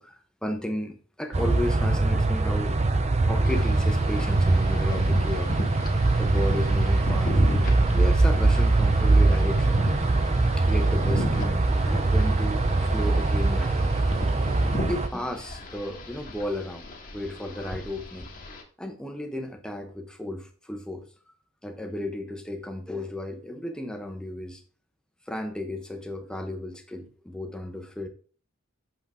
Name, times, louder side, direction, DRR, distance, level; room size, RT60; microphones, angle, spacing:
voice 1, 0.0-2.8 3.2-5.6 6.2-7.6 7.9-9.8 10.6-12.6 12.9-13.9 14.9-18.3 18.8-21.1 21.6-24.6 25.3-28.1, left 1 dB, 5° left, 0.8 m, -34 dB
sound 1, 1.3-15.1, right 2 dB, 35° right, 0.6 m, -22 dB
sound 2, 3.4-18.6, left 1 dB, 45° left, 1.4 m, -36 dB
7.0 x 5.8 x 3.4 m
head